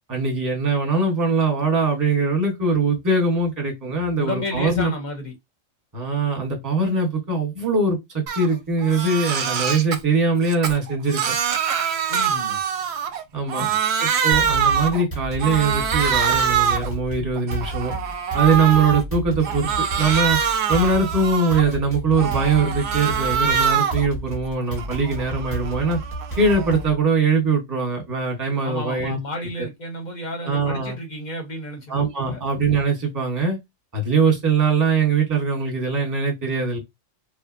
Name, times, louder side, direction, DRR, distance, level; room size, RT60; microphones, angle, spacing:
voice 1, 0.1-4.9 5.9-11.4 13.3-13.7 14.0-17.9 18.3-19.7 20.0-20.4 20.7-26.0 26.4-29.2 29.6-29.7 30.4-31.0 31.9-33.6 33.9-36.8, right 4 dB, 15° right, 0.9 m, -22 dB
voice 2, 4.2-5.3 12.1-12.6 13.4-13.8 28.6-32.4, left 1 dB, 45° left, 0.7 m, -32 dB
Crying sobbing, 8.3-8.5 8.8-10.0 10.4-13.2 13.5-15.0 15.4-16.9 17.4-19.0 19.4-21.7 22.1-24.1 24.5-26.8, right 7 dB, 65° right, 0.7 m, -24 dB
sound 1, 14.3-27.0, right 1 dB, 15° left, 0.7 m, -32 dB
3.1 x 2.1 x 2.5 m
omnidirectional pair, 1.3 m